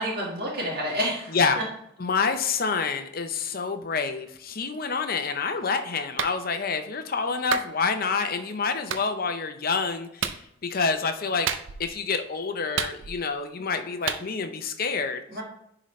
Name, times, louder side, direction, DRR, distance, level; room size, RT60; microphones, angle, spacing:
voice 1, 0.0-1.6 15.3-15.4, equal, 50° right, -3 dB, 1.7 m, -29 dB
voice 2, 2.0-11.5 11.8-15.2, left 5 dB, 50° left, 7 dB, 0.7 m, -27 dB
Clapping, 6.2-6.4 7.5-7.7 8.9-9.1 10.2-10.4 11.5-11.9 12.8-13.3 14.1-14.2, right 7 dB, 75° right, 0.5 m, -29 dB
9.9 x 3.9 x 3.2 m, 0.76 s
head